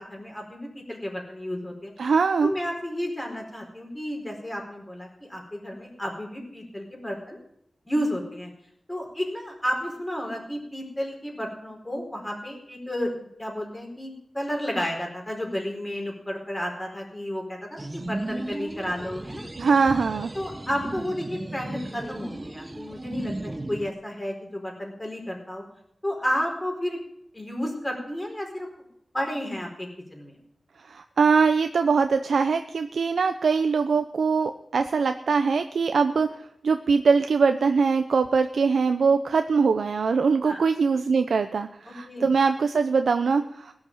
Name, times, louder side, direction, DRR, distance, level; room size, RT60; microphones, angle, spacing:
voice 1, 0.0-1.9 2.4-7.4 7.8-8.5 8.9-19.5 20.3-25.6 26.0-27.0 27.3-28.7 29.1-30.3 40.4-40.6 41.9-42.3, equal, 15° left, 0 dB, 4.6 m, -32 dB
voice 2, 2.0-2.5 19.6-20.3 30.9-36.3 36.6-43.7, right 5 dB, 85° right, 8 dB, 0.6 m, -22 dB
sound 1, 17.8-23.9, right 2 dB, 25° right, 0.9 m, -35 dB
17.0 x 6.5 x 10.0 m, 0.75 s
wide cardioid pair, 80°, 0 cm